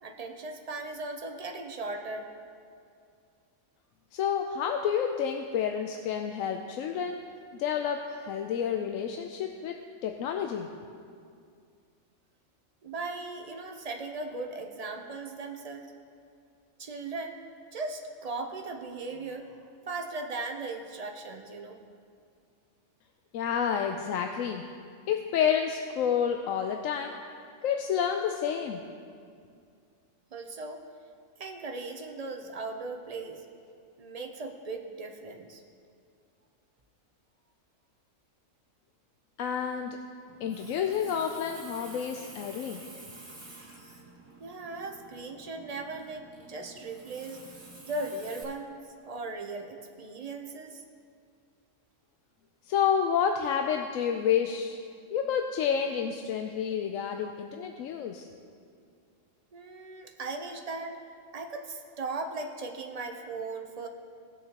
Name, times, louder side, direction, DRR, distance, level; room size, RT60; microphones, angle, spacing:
voice 1, 0.0-2.3 12.8-15.9 16.8-17.4 17.7-21.8 30.3-30.8 31.4-33.5 34.0-35.6 44.4-48.8 49.0-50.8 59.5-61.0 61.3-63.9, right 3 dB, 40° right, 3 dB, 0.6 m, -38 dB
voice 2, 4.1-7.2 7.5-9.7 10.0-10.7 23.3-24.6 25.1-27.1 27.6-28.8 39.4-40.0 40.4-42.8 52.7-54.8 55.1-58.3, left 8 dB, 80° left, 4 dB, 1.0 m, -29 dB
Water tap faucet, 40.3-48.4, right 2 dB, 20° right, 1.6 m, -49 dB
18.5 x 6.7 x 2.9 m, 2.3 s
omnidirectional pair, 1.4 m